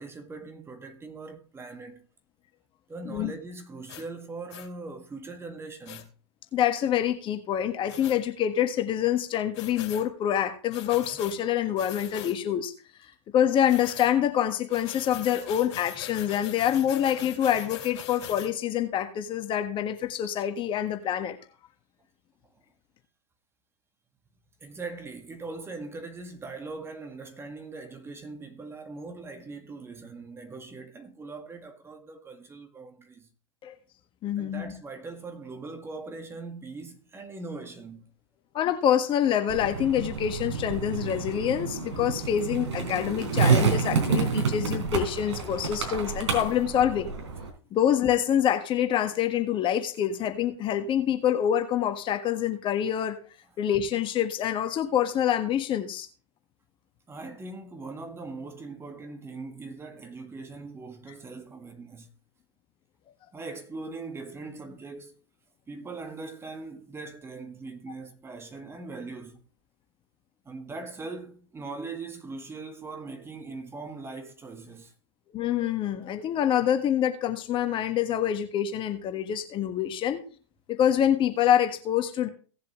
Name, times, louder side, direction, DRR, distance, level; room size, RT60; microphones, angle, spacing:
voice 1, 0.0-2.1 2.9-6.1 24.6-33.3 34.4-38.1 57.1-62.1 63.3-65.2 65.7-69.4 70.5-74.9, right 3 dB, 15° right, 1.8 m, -41 dB
sound 1, 3.9-4.0 4.5-4.7 5.8-6.0 7.9-8.2 9.5-10.0 10.7-11.4 11.8-12.4 13.7-14.1 14.7-18.5, left 11 dB, 60° left, 2.4 m, -41 dB
voice 2, 6.5-12.7 13.3-21.4 33.6-33.7 34.2-34.7 38.5-47.1 47.7-53.2 53.6-56.1 75.3-80.2 80.7-82.3, left 10 dB, 30° left, 1.4 m, -26 dB
Skateboard, 39.5-47.5, right 5 dB, 65° right, 3.7 m, -28 dB
17.5 x 7.4 x 3.1 m
hypercardioid pair, 100°, 16 cm